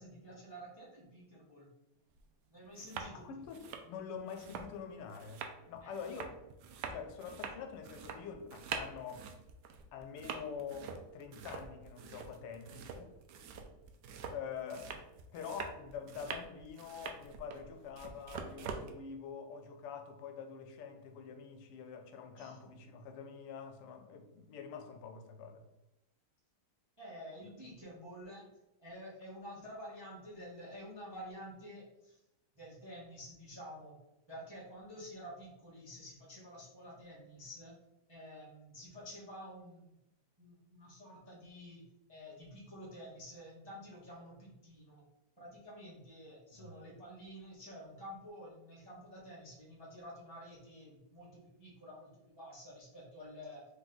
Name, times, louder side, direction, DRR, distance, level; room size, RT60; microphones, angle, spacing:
voice 1, 0.0-1.7 2.5-3.3 5.8-6.0 22.4-22.6 27.0-28.5 28.8-32.2 32.6-34.0 34.3-37.8 38.1-39.9 40.4-45.0 45.4-53.6, equal, 30° right, 0.5 m, -50 dB
sound 1, 2.1-2.2 2.6-3.1 3.4-18.9, right 6 dB, 85° right, 0.9 m, -45 dB
voice 2, 3.1-6.4 6.9-9.3 9.9-13.1 14.3-14.9 15.3-25.6 27.4-27.5 46.5-46.7, left 6 dB, 90° left, 1.6 m, -46 dB
4.0 x 3.2 x 3.8 m
omnidirectional pair, 2.4 m